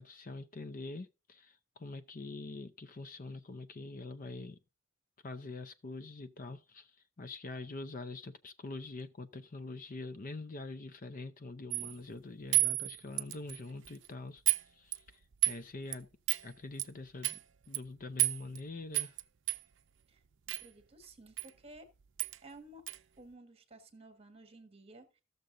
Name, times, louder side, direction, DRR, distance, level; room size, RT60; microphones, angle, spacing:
voice 1, 0.0-4.6 5.2-15.0 15.4-16.1 16.4-17.4 17.7-19.2, left 3 dB, 40° left, 0.6 m, -44 dB
small metal pieces, 11.7-11.9 12.5-13.6 13.8-14.1 14.5-14.6 14.9-15.6 15.9-16.0 16.3-16.4 16.8-16.9 17.2-17.4 17.7-17.8 18.2-18.6 18.9-19.2 19.5-19.6 20.5-20.7 21.4-21.5 21.8-21.9 22.2-22.4 22.9-23.0, right 23 dB, 60° right, 0.5 m, -31 dB
voice 2, 20.6-21.9 22.4-22.9 23.2-25.2, right 2 dB, 30° right, 1.5 m, -54 dB
14.0 x 6.7 x 3.8 m
head